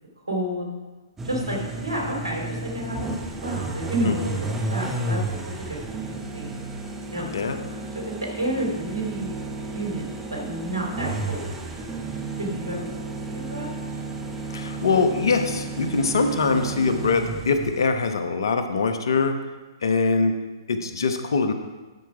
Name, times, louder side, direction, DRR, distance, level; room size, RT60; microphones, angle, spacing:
voice 1, 0.3-0.7 1.2-5.2 5.7-5.8 6.3-6.5 7.1-7.3 7.9-9.4 9.7-11.6 12.4-12.9 13.3-13.7, right 1 dB, 85° right, -1 dB, 2.8 m, -30 dB
sound 1, 1.2-18.0, right 2 dB, 15° right, 0.9 m, -32 dB
voice 2, 14.5-19.4 19.8-20.3 20.7-21.5, left 4 dB, 65° left, 8 dB, 0.9 m, -23 dB
12.0 x 4.7 x 4.8 m, 1.2 s
figure-of-eight pair, 120°, 2 cm